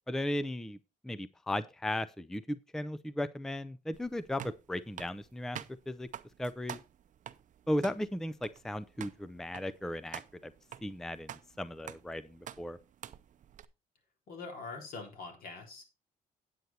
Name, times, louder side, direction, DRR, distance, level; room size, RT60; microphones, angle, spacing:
voice 1, 0.1-0.8 1.0-5.6 5.9-6.1 6.4-6.8 7.7-10.5 10.8-12.8, left 1 dB, 5° left, 15 dB, 0.4 m, -36 dB
sound 1, 3.9-13.6, right 10 dB, 55° right, 0.7 m, -48 dB
voice 2, 14.3-15.8, left 4 dB, 70° left, 3 dB, 3.9 m, -43 dB
9.3 x 8.1 x 4.2 m, 0.27 s
cardioid pair, 130°, 16 cm